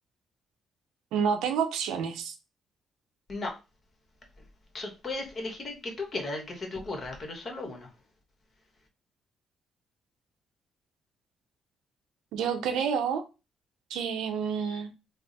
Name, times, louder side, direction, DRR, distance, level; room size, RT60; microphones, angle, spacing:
voice 1, 1.1-2.3 12.3-13.2 13.9-14.9, right 7 dB, 90° right, 0.6 m, -29 dB
voice 2, 4.7-7.9, left 2 dB, 40° left, 1.1 m, -36 dB
3.4 x 2.0 x 4.0 m
cardioid pair, 90°, 0 cm